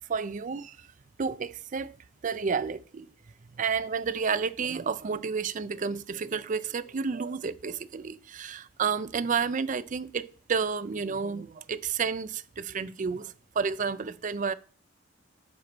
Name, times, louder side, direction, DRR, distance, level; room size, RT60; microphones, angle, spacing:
voice 1, 0.1-0.8 1.2-2.0 2.2-3.1 3.6-14.5, right 5 dB, 40° right, 0.4 m, -31 dB
7.8 x 4.0 x 6.1 m
head